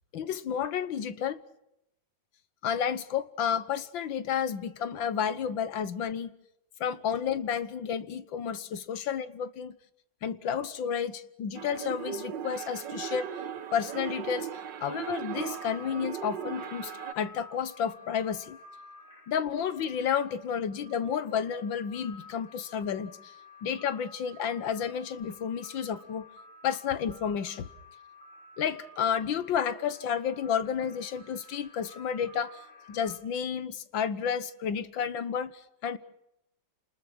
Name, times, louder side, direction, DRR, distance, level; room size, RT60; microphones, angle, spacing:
voice 1, 0.1-1.4 2.6-6.3 6.8-9.8 10.2-13.3 13.7-14.5 14.8-18.6 19.3-23.3 23.6-26.3 26.6-27.7 28.6-32.6 32.9-36.0, left 8 dB, 80° left, 14 dB, 1.9 m, -31 dB
sound 1, 11.6-17.1, right 8 dB, 70° right, 1.8 m, -37 dB
sound 2, 15.3-33.2, left 3 dB, 40° left, 6.2 m, -52 dB
29.0 x 20.5 x 6.2 m, 0.83 s
omnidirectional pair, 2.1 m